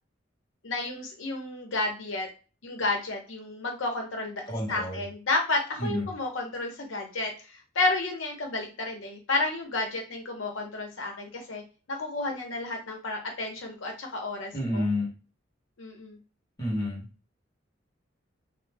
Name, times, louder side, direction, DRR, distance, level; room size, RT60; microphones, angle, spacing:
voice 1, 0.6-2.3 2.6-4.4 4.7-7.3 7.7-11.6 11.9-14.8 15.8-16.2, left 2 dB, 85° left, 1 dB, 0.7 m, -31 dB
voice 2, 4.5-5.1 5.8-6.1 14.5-15.1 16.6-17.1, left 1 dB, 20° left, -4 dB, 0.9 m, -29 dB
2.1 x 2.1 x 3.3 m, 0.33 s
head